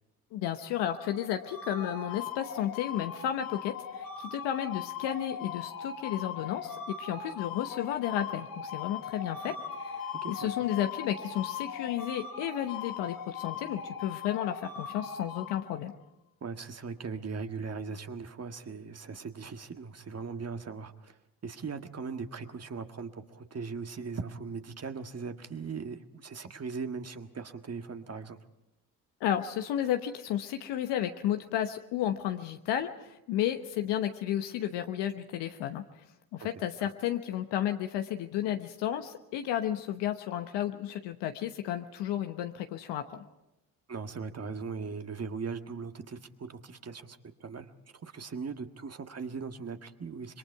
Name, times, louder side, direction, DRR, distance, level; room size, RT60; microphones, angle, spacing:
voice 1, 0.3-15.9 29.2-36.0 36.3-43.2, left 11 dB, 70° left, 6 dB, 1.1 m, -32 dB
sound 1, 0.7-16.0, left 7 dB, 55° left, 1.5 m, -40 dB
voice 2, 16.4-28.4 36.4-36.5 36.8-36.9 43.9-50.4, right 5 dB, 35° right, 7 dB, 1.7 m, -39 dB
26.5 x 22.0 x 4.7 m, 0.89 s
hypercardioid pair, 55°, 42 cm